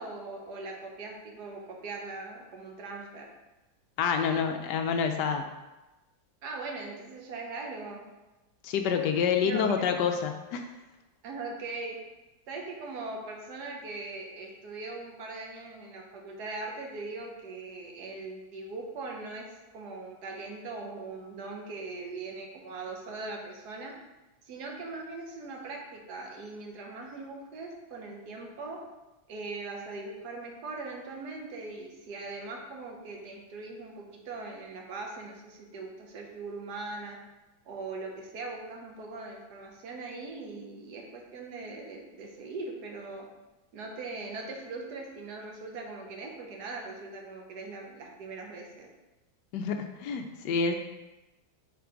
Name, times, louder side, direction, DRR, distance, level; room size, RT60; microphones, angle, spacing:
voice 1, 0.0-3.3 6.4-8.0 9.4-9.8 11.2-12.0 12.5-23.9 24.4-28.8 29.3-37.2 37.6-43.3 43.7-48.9, right 3 dB, 60° right, 1 dB, 1.5 m, -40 dB
voice 2, 4.0-5.5 8.6-10.7 49.5-50.7, left 6 dB, 70° left, 5 dB, 1.1 m, -28 dB
5.8 x 3.9 x 5.0 m, 1.1 s
omnidirectional pair, 2.0 m